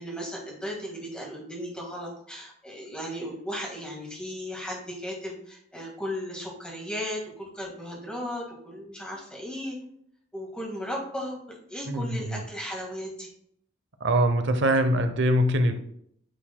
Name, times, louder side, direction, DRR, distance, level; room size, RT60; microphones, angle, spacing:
voice 1, 0.0-9.8 10.3-13.3, equal, 5° left, -2 dB, 1.7 m, -36 dB
voice 2, 11.9-12.4 14.0-15.8, right 1 dB, 60° right, 8 dB, 0.7 m, -23 dB
9.0 x 4.8 x 2.2 m, 0.69 s
head